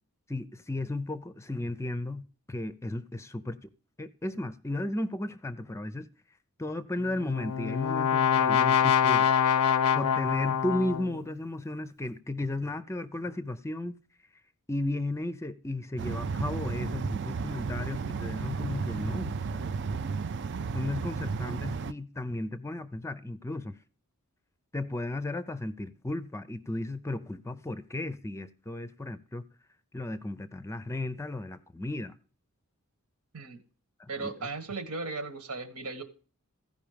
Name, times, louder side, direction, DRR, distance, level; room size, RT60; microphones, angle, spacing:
voice 1, 0.3-3.7 4.0-6.1 6.6-9.3 9.9-13.9 14.7-19.7 20.7-23.8 24.7-29.5 29.9-32.1 34.0-34.3, left 2 dB, 15° left, 0.5 m, -34 dB
Brass instrument, 7.0-11.2, left 8 dB, 85° left, 0.5 m, -25 dB
sound 1, 16.0-21.9, right 5 dB, 55° right, 0.5 m, -33 dB
voice 2, 34.1-36.0, right 3 dB, 85° right, 1.6 m, -36 dB
15.0 x 5.4 x 5.0 m
head